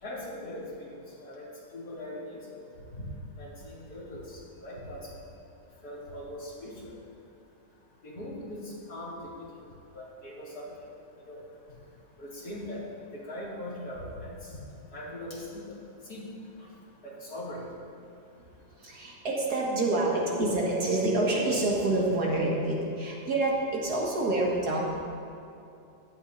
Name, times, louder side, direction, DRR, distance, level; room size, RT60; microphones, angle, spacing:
voice 1, 0.0-0.9 1.2-3.1 3.4-5.1 5.8-6.9 8.0-9.5 9.9-10.7 11.3-11.4 12.2-12.8 13.1-14.5 14.9-16.2 17.0-17.6, left 1 dB, 65° left, -6 dB, 3.1 m, -41 dB
voice 2, 18.8-24.9, right 2 dB, 65° right, -3 dB, 2.3 m, -27 dB
16.0 x 11.5 x 2.7 m, 2.7 s
omnidirectional pair, 1.8 m